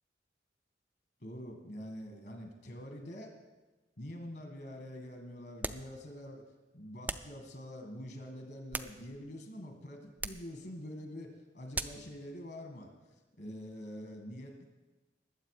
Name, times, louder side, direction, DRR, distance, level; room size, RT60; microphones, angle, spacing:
voice 1, 1.2-3.3 4.0-6.4 6.7-12.9 13.4-14.6, equal, 60° left, 4 dB, 1.8 m, -45 dB
sound 1, 5.6-5.9 7.1-7.4 8.4-9.3 10.2-10.5 11.7-12.1, right 3 dB, 10° right, 0.3 m, -39 dB
21.0 x 7.8 x 4.9 m, 1.2 s
head